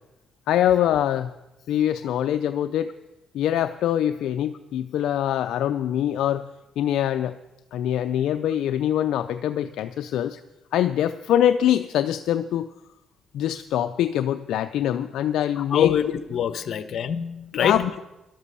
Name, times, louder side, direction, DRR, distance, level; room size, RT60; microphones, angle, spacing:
voice 1, 0.5-1.3 1.7-2.9 3.3-6.5 6.8-7.3 7.7-10.4 10.7-12.7 13.3-16.1 16.7-16.8 17.5-18.0, left 11 dB, 80° left, 8 dB, 0.5 m, -24 dB
voice 2, 15.6-16.0 16.3-17.8, left 9 dB, 65° left, 11 dB, 1.1 m, -24 dB
12.5 x 12.5 x 6.9 m, 0.97 s
cardioid pair, 90°, 0 cm